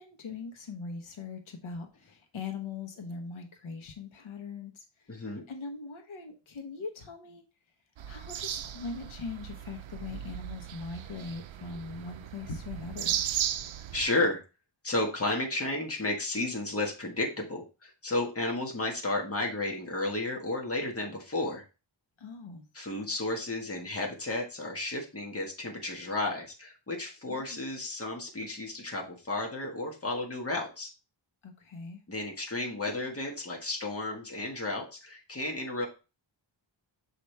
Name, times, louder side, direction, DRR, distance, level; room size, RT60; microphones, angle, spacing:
voice 1, 0.0-5.2 5.5-7.4 8.1-13.2 22.2-22.6 27.3-27.6 31.4-32.0, left 4 dB, 80° left, 4 dB, 1.1 m, -41 dB
voice 2, 5.1-5.4 13.9-14.4 14.8-21.6 22.7-30.9 32.1-35.9, left 2 dB, 30° left, 0 dB, 1.5 m, -32 dB
sound 1, 8.0-14.1, right 10 dB, 75° right, 0.6 m, -36 dB
6.7 x 4.9 x 3.3 m, 0.31 s
wide cardioid pair, 155°, 47 cm